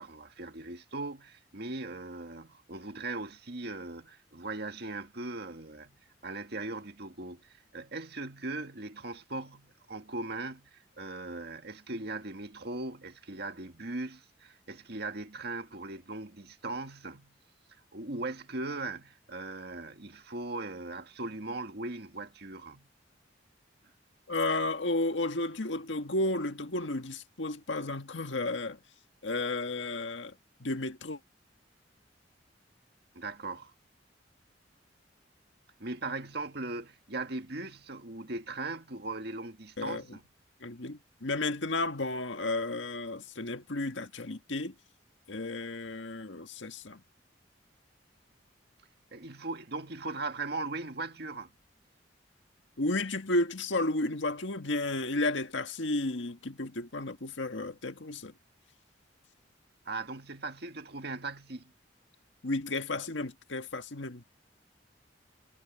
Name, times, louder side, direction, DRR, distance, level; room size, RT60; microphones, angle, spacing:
voice 1, 0.0-6.0 6.2-17.4 17.9-22.9 33.2-33.7 35.8-40.2 49.1-51.5 59.9-61.7, right 2 dB, 60° right, 1.9 m, -39 dB
voice 2, 24.3-28.8 29.2-30.3 30.6-31.2 39.8-40.0 40.6-44.7 45.3-47.0 52.8-58.3 62.4-64.2, left 2 dB, 80° left, 1.7 m, -32 dB
head